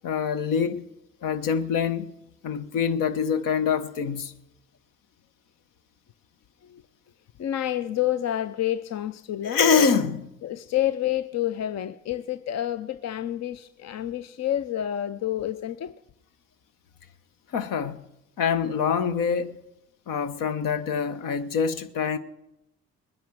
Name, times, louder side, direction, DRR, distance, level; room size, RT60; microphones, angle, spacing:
voice 1, 0.0-0.8 1.2-2.1 2.4-4.3 9.4-10.3 17.5-18.0 18.4-19.6 20.1-22.2, left 6 dB, 70° left, 1.2 m, -25 dB
voice 2, 7.4-9.6 10.4-15.9, left 12 dB, 50° left, 0.6 m, -29 dB
20.5 x 10.5 x 6.4 m
hypercardioid pair, 50°, 34 cm